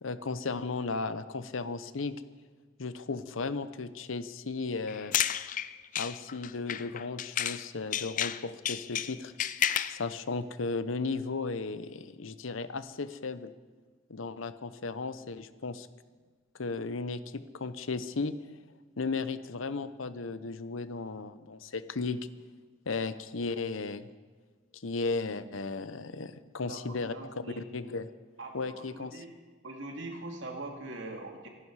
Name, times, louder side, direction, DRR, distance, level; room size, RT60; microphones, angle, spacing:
voice 1, 0.0-2.2 2.8-5.1 6.0-9.3 9.9-13.5 14.1-15.9 16.6-18.3 19.0-22.2 22.9-24.1 24.7-27.1 27.6-28.1 28.5-29.2, left 4 dB, 85° left, 13 dB, 0.8 m, -35 dB
sound 1, 4.9-7.6 7.9-10.0, left 10 dB, 40° left, 0.4 m, -31 dB
voice 2, 26.6-27.6 28.4-29.3 29.6-31.5, right 2 dB, 65° right, 2 dB, 2.6 m, -42 dB
26.0 x 11.5 x 4.8 m, 1.5 s
head